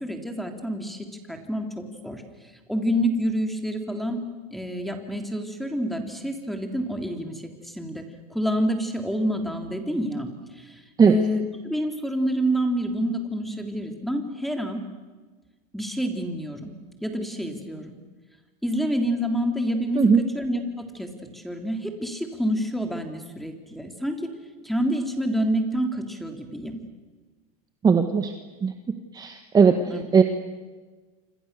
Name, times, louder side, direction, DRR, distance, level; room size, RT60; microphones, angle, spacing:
voice 1, 0.0-2.2 2.7-4.2 4.5-8.0 8.3-14.8 15.7-16.7 17.0-17.9 18.6-24.2 24.6-26.8 29.9-30.0, equal, ahead, 4 dB, 3.5 m, -28 dB
voice 2, 27.8-28.3 28.6-28.7 29.1-29.7 30.1-30.2, right 6 dB, 20° right, 7 dB, 1.5 m, -17 dB
28.0 x 27.0 x 6.9 m, 1.3 s
supercardioid pair, 130°, 20 cm